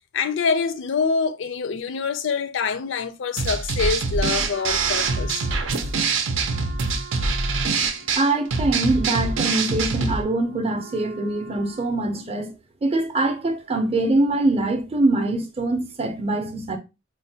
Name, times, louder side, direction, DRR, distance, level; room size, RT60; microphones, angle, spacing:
voice 1, 0.1-5.5, left 5 dB, 65° left, 0.4 m, -25 dB
sound 1, 3.4-10.2, right 4 dB, 80° right, 0.6 m, -24 dB
Wind instrument woodwind instrument, 4.5-12.4, right 6 dB, 90° left, 0.8 m, -44 dB
voice 2, 8.2-12.5 12.8-16.8, right 2 dB, 30° right, 0.6 m, -23 dB
4.4 x 2.2 x 2.7 m
head